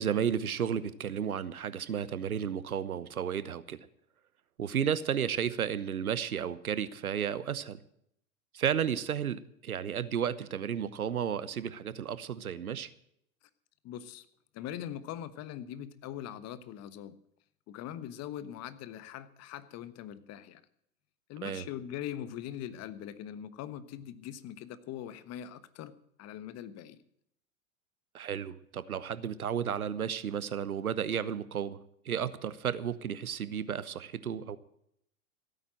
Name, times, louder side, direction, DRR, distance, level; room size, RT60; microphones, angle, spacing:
voice 1, 0.0-3.9 4.6-7.8 8.5-12.9 21.4-21.6 28.1-31.8 32.0-34.6, right 8 dB, 90° right, 16 dB, 1.1 m, -33 dB
voice 2, 13.8-14.3 14.5-17.1 17.7-20.6 21.3-27.0, left 10 dB, 35° left, 14 dB, 1.3 m, -42 dB
16.0 x 9.1 x 7.7 m, 0.73 s
hypercardioid pair, 100°, 42 cm